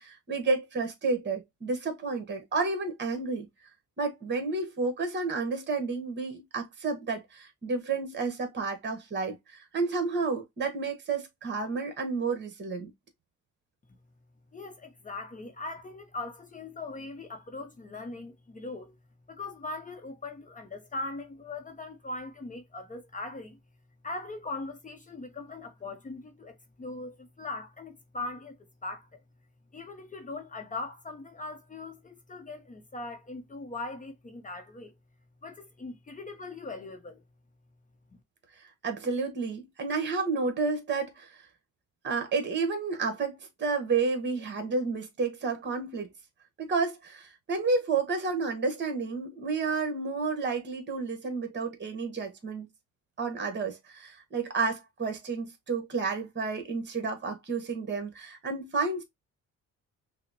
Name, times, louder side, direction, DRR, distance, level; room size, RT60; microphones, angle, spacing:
voice 1, 0.0-3.5 4.0-12.9 38.6-41.4 42.0-46.1 46.6-52.7 53.2-59.0, right 4 dB, 35° right, 1.3 m, -31 dB
voice 2, 14.5-19.0 19.3-23.6 24.0-29.2 29.7-34.9 35.4-37.2 38.1-38.2, left 2 dB, 25° left, 0.7 m, -40 dB
5.6 x 2.1 x 2.8 m
cardioid pair, 90°, 30 cm